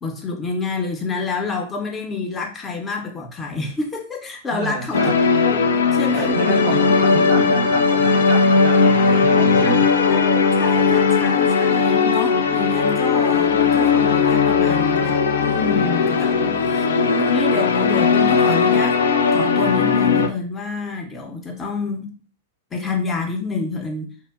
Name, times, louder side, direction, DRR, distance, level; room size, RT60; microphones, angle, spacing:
voice 1, 0.0-6.9 7.4-7.6 9.1-9.8 10.1-19.0 19.3-22.1 22.7-24.1, left 4 dB, 20° left, 2 dB, 0.6 m, -28 dB
voice 2, 4.5-5.2 6.2-9.8, right 4 dB, 50° right, 3 dB, 0.4 m, -28 dB
sound 1, 4.9-20.3, left 5 dB, 70° left, 0.3 m, -18 dB
2.8 x 2.1 x 2.3 m, 0.38 s
figure-of-eight pair, 100°, 0 cm